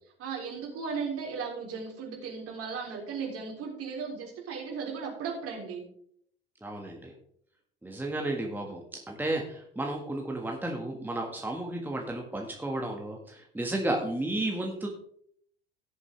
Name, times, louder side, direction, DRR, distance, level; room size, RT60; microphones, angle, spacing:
voice 1, 0.2-5.8, right 5 dB, 50° right, 0 dB, 3.8 m, -36 dB
voice 2, 6.6-7.1 7.8-8.8 9.1-14.9, right 1 dB, 5° right, 0 dB, 1.8 m, -33 dB
17.0 x 7.1 x 3.4 m, 0.65 s
figure-of-eight pair, 65°, 30 cm